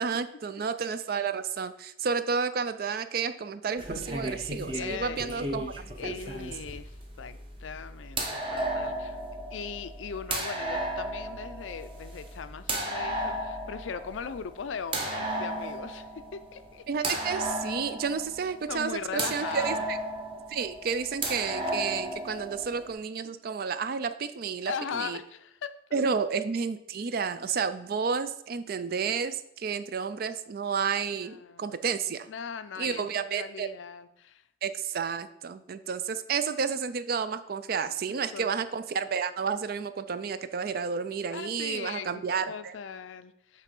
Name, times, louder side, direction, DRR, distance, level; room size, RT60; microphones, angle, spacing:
voice 1, 0.0-5.7 16.9-20.0 20.5-25.2 25.9-32.3 32.8-33.7 34.6-42.7, right 6 dB, 50° right, 12 dB, 0.4 m, -31 dB
sound 1, 3.8-22.9, right 1 dB, 25° right, 0.9 m, -35 dB
voice 2, 4.7-9.2 9.5-16.8 18.7-19.9 24.7-26.1 31.2-31.7 32.3-34.4 38.1-38.5 41.3-43.6, left 6 dB, 90° left, 12 dB, 0.5 m, -39 dB
7.4 x 3.3 x 5.3 m, 0.77 s
head